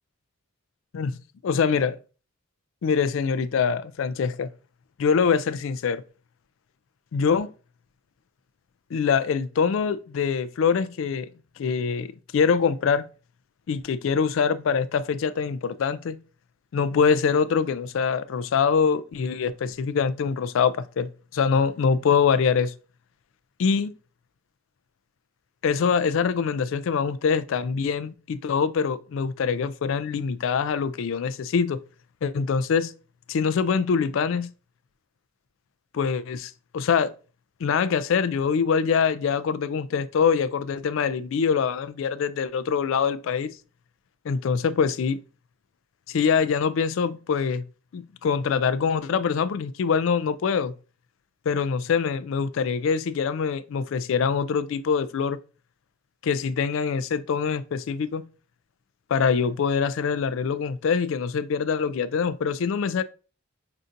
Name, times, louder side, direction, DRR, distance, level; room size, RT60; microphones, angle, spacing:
voice 1, 1.4-2.0 2.8-4.5 5.0-6.0 7.1-7.5 8.9-11.3 11.6-13.0 13.7-16.2 16.7-22.7 23.6-23.9 25.6-31.8 32.2-32.9 33.3-34.5 35.9-37.1 37.6-43.5 44.3-45.2 46.1-47.6 47.9-50.7 51.5-55.4 56.2-58.2 59.1-63.0, left 6 dB, 65° left, 0.3 m, -24 dB
5.6 x 2.5 x 2.6 m
head